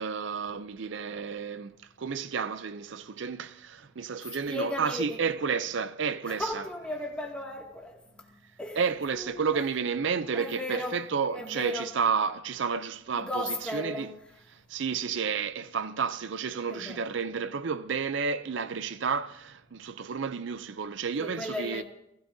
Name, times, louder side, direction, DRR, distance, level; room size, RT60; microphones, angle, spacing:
voice 1, 0.0-6.6 8.8-13.4 13.7-14.1 14.5-21.8, right 6 dB, 70° right, 0.5 m, -31 dB
voice 2, 4.5-5.2 6.2-8.3 8.6-8.8 9.1-9.7 10.3-11.0 11.3-11.9 13.1-14.1 16.6-17.1 21.2-21.8, left 1 dB, 5° left, 2.2 m, -36 dB
30.0 x 16.5 x 2.7 m
head